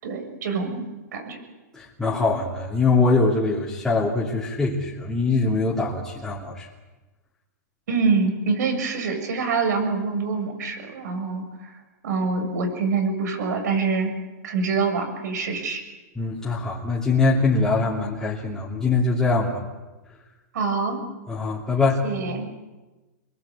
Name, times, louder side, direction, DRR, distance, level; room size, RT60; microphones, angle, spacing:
voice 1, 0.0-0.9 1.1-1.4 7.9-11.8 12.0-14.1 14.4-15.8 20.5-21.0 22.0-22.5, right 4 dB, 75° right, 5 dB, 7.0 m, -25 dB
voice 2, 1.7-6.7 16.2-19.6 21.3-22.0, left 3 dB, 5° left, -7 dB, 2.9 m, -23 dB
26.5 x 22.0 x 8.6 m, 1.2 s
supercardioid pair, 165°, 9 cm